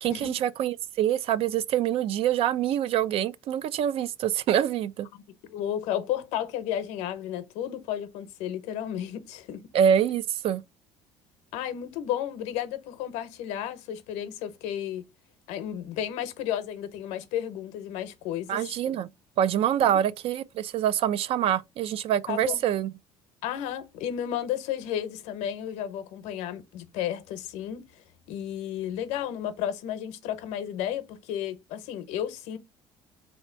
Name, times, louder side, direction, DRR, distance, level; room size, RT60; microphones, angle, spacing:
voice 1, 0.0-5.1 9.7-10.6 18.5-19.1 19.4-22.9, right 10 dB, 55° right, 0.4 m, -25 dB
voice 2, 5.5-9.7 11.5-15.0 15.5-19.0 19.8-19.9 22.3-22.7 23.4-32.6, left 10 dB, 80° left, 0.7 m, -33 dB
3.3 x 2.8 x 4.3 m
cardioid pair, 110°, 12 cm